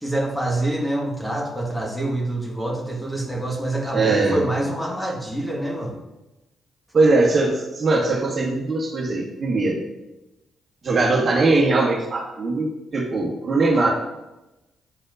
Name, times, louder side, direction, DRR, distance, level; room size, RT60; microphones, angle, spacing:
voice 1, 0.0-6.0, right 1 dB, 5° left, -1 dB, 1.7 m, -26 dB
voice 2, 3.9-4.4 6.9-9.8 10.8-13.9, right 3 dB, 45° right, -1 dB, 1.4 m, -20 dB
9.1 x 4.2 x 2.6 m, 0.99 s
hypercardioid pair, 45°, 0 cm